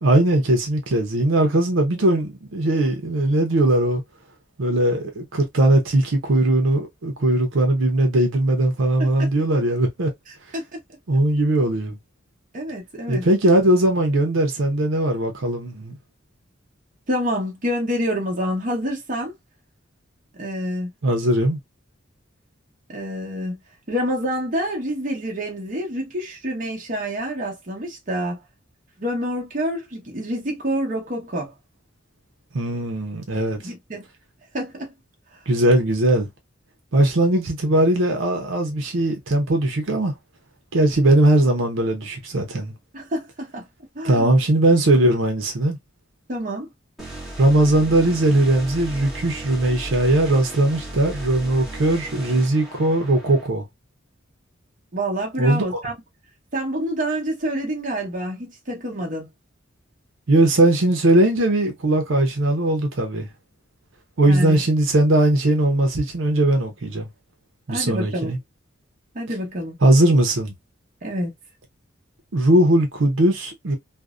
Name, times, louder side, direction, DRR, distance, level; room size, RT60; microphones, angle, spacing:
voice 1, 0.0-4.0 4.6-10.1 11.1-12.0 13.1-15.9 21.0-21.6 32.5-33.7 35.5-36.3 36.9-40.1 40.7-42.7 44.0-45.8 47.4-53.6 55.4-55.8 60.3-63.3 64.2-67.1 67.7-68.4 69.8-70.5 72.3-73.8, right 1 dB, 80° right, 0.6 m, -19 dB
voice 2, 10.3-10.6 12.5-13.3 17.1-19.3 20.4-20.9 22.9-23.6 23.9-28.4 29.0-31.5 33.6-34.1 34.5-34.9 42.9-43.7 43.9-44.3 46.3-46.7 54.9-55.9 56.5-59.3 64.2-64.6 67.7-68.3 69.1-69.8 71.0-71.3, equal, 40° right, 0.8 m, -27 dB
sound 1, 47.0-53.5, right 1 dB, ahead, 0.9 m, -35 dB
2.5 x 2.0 x 2.3 m
head